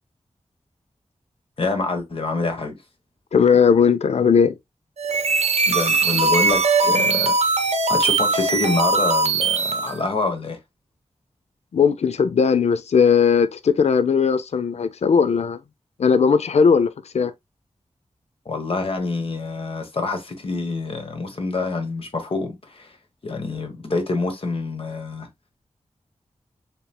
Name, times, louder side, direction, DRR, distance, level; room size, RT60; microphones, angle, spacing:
voice 1, 1.6-2.8 5.7-7.4 7.9-10.6 18.4-23.0 23.2-25.3, left 3 dB, 55° left, 1.2 m, -26 dB
voice 2, 3.3-4.6 11.7-15.6 16.0-17.3, left 6 dB, 70° left, 0.5 m, -18 dB
sound 1, 5.0-10.0, right 3 dB, 70° right, 0.9 m, -20 dB
6.7 x 3.0 x 2.2 m
wide cardioid pair, 110°, 12 cm